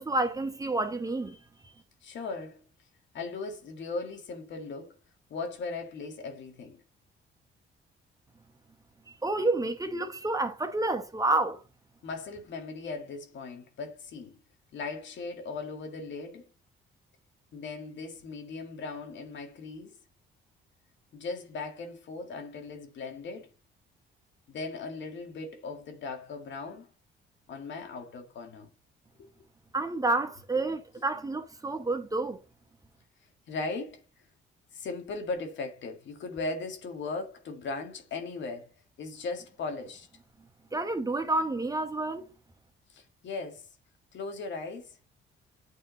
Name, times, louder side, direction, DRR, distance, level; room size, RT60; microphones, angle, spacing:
voice 1, 0.0-1.4 9.2-11.6 29.7-32.4 40.7-42.3, right 2 dB, 15° right, 1.0 m, -29 dB
voice 2, 2.0-2.6 3.1-5.0 5.3-6.8 12.0-14.4 14.7-16.5 17.5-19.9 21.1-23.5 24.5-26.9 27.5-28.7 29.2-29.3 33.5-34.0 34.7-38.7 39.0-40.1 42.9-43.7 44.1-45.0, left 3 dB, 65° left, 1.8 m, -38 dB
8.9 x 3.6 x 3.8 m
cardioid pair, 90°, 20 cm